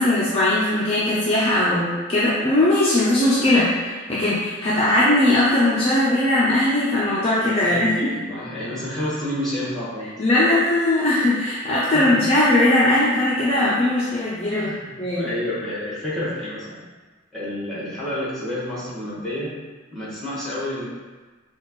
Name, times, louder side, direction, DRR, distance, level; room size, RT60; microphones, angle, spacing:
voice 1, 0.0-7.9 10.2-14.7 15.0-15.3, left 1 dB, 30° left, -9 dB, 0.6 m, -19 dB
voice 2, 7.6-10.1 11.9-12.2 14.5-16.8 17.3-19.5 19.9-20.9, left 1 dB, ahead, -9 dB, 1.5 m, -29 dB
6.1 x 2.4 x 3.1 m, 1.3 s
head